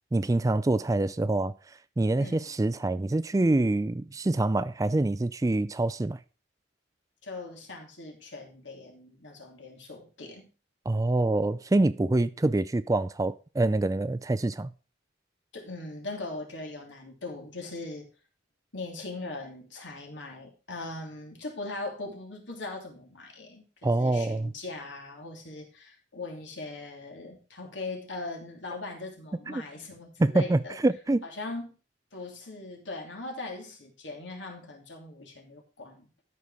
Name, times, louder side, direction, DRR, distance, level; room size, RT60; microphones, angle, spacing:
voice 1, 0.1-1.5 2.0-6.2 10.9-14.7 23.8-24.5 30.2-31.2, right 2 dB, 20° right, 0.4 m, -25 dB
voice 2, 2.2-2.6 7.2-10.5 15.5-18.1 18.7-30.8 31.2-31.8 32.1-36.1, left 2 dB, 75° left, 2.9 m, -40 dB
13.0 x 5.4 x 4.8 m
head